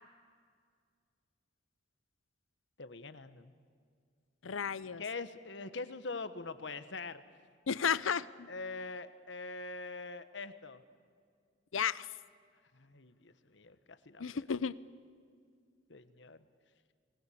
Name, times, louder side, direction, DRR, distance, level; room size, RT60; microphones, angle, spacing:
voice 1, 2.8-3.5 5.0-7.2 8.5-10.8 12.7-14.5 15.9-16.5, left 3 dB, 65° left, 12 dB, 1.3 m, -43 dB
voice 2, 4.4-5.0 7.7-8.5 11.7-12.1 14.2-14.7, left 7 dB, 85° left, 18 dB, 0.7 m, -33 dB
25.5 x 20.0 x 8.6 m, 2.2 s
head